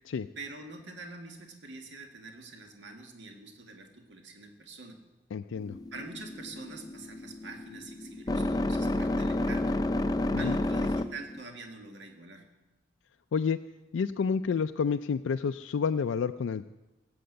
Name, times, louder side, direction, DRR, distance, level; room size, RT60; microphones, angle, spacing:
voice 1, 0.4-5.0 5.9-9.8 10.4-12.5, right 3 dB, 70° right, 4 dB, 1.8 m, -45 dB
voice 2, 5.3-5.8 10.3-10.5 13.3-13.6 13.9-16.7, left 6 dB, 85° left, 8 dB, 0.4 m, -29 dB
sound 1, 5.6-11.4, left 1 dB, 20° left, 0.5 m, -31 dB
16.5 x 7.9 x 7.9 m, 1.1 s
head